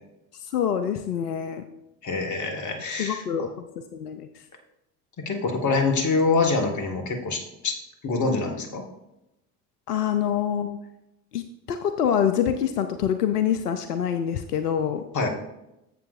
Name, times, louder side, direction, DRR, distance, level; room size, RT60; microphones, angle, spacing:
voice 1, 0.3-1.7 3.0-4.4 9.9-10.8 11.3-15.1, left 9 dB, 85° left, 9 dB, 0.5 m, -26 dB
voice 2, 2.0-3.5 5.2-7.7 8.0-8.8 15.1-15.3, left 3 dB, 40° left, 4 dB, 1.6 m, -25 dB
11.0 x 7.5 x 2.5 m, 0.88 s
figure-of-eight pair, 55°, 45 cm